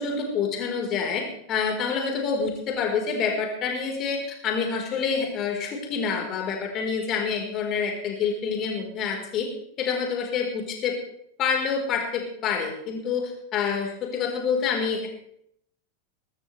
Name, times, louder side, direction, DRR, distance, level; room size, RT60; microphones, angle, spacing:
voice 1, 0.0-9.5 9.8-10.9 11.4-15.1, left 6 dB, 35° left, 1 dB, 4.0 m, -27 dB
22.5 x 13.0 x 3.3 m, 0.71 s
figure-of-eight pair, 90°, 0 cm